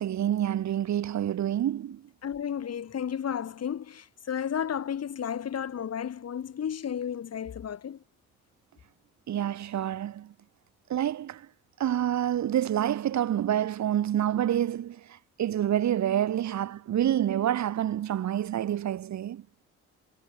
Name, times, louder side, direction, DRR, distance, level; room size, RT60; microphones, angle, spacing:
voice 1, 0.0-2.0 9.3-10.3 10.9-11.4 11.8-15.0 15.4-19.4, right 11 dB, 65° right, 2.8 m, -27 dB
voice 2, 2.2-8.0, left 8 dB, 55° left, 5.3 m, -33 dB
cardioid pair, 90°, 30 cm